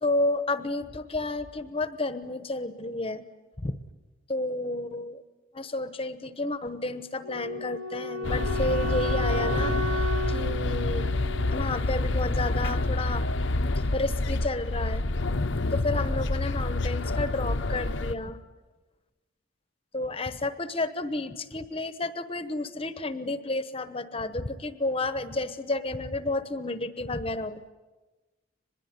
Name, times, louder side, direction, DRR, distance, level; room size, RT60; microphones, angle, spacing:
voice 1, 0.0-3.2 3.6-3.8 4.3-5.2 5.5-9.8 10.3-11.1 11.5-13.2 13.9-15.0 15.4-18.4 19.9-27.7, left 2 dB, 25° left, 11 dB, 1.0 m, -31 dB
Wind instrument woodwind instrument, 7.2-12.3, left 1 dB, 90° right, 3.1 m, -34 dB
sound 1, 8.2-18.1, left 2 dB, 60° left, 0.9 m, -27 dB
24.5 x 21.0 x 9.7 m, 1.2 s
head